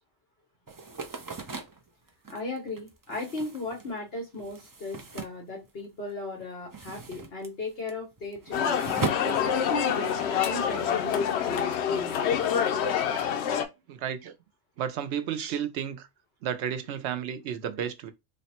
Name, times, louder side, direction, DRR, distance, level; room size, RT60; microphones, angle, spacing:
sound 1, 0.7-6.1 6.4-10.3, right 3 dB, 35° right, 0.3 m, -38 dB
voice 1, 2.3-8.8 9.2-12.2, left 2 dB, 65° left, 1.4 m, -36 dB
sound 2, 8.5-13.7, left 8 dB, 80° left, 0.8 m, -26 dB
voice 2, 13.9-14.3 14.8-16.1 16.4-18.1, right 8 dB, 90° right, 0.9 m, -32 dB
3.2 x 2.1 x 4.2 m
omnidirectional pair, 1.1 m